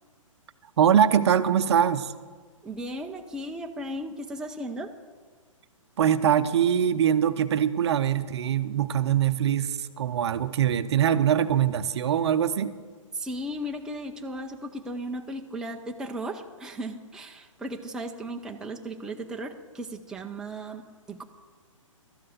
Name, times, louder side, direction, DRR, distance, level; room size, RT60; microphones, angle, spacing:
voice 1, 0.8-2.1 6.0-12.8, right 9 dB, 55° right, 11 dB, 0.7 m, -23 dB
voice 2, 2.6-4.9 13.1-21.2, right 1 dB, 5° right, 2 dB, 0.6 m, -36 dB
13.0 x 7.6 x 7.8 m, 1.4 s
figure-of-eight pair, 130°, 17 cm